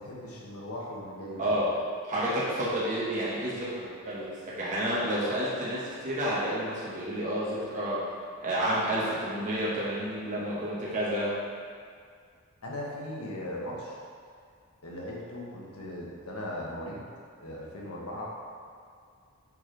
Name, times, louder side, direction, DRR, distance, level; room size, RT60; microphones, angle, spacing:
voice 1, 0.0-1.4 12.6-14.0 14.8-17.1 17.4-18.3, left 1 dB, 75° left, -4 dB, 1.3 m, -38 dB
voice 2, 2.0-8.0 8.4-11.3, right 1 dB, 35° right, -8 dB, 1.2 m, -30 dB
6.0 x 5.4 x 3.9 m, 2.2 s
head